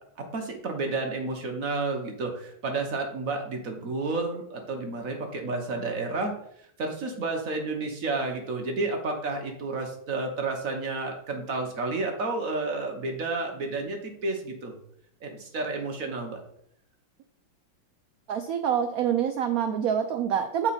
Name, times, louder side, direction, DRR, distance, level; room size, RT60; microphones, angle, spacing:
voice 1, 0.3-6.3 6.8-14.7 15.2-16.4, right 3 dB, 50° right, 3 dB, 1.2 m, -31 dB
voice 2, 18.3-20.7, right 8 dB, 90° right, 7 dB, 0.7 m, -26 dB
8.4 x 4.5 x 4.2 m, 0.68 s
omnidirectional pair, 2.2 m